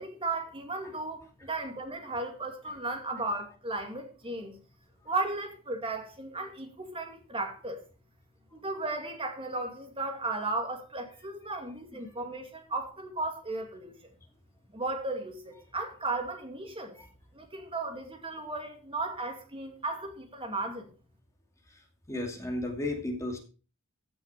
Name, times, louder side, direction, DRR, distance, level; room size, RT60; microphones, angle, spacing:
voice 1, 0.0-4.5 5.0-7.8 8.5-14.0 14.7-17.0 17.3-20.9, right 2 dB, 25° right, 2.3 m, -35 dB
voice 2, 22.1-23.4, left 1 dB, 15° left, 2.7 m, -33 dB
15.0 x 6.4 x 4.9 m
head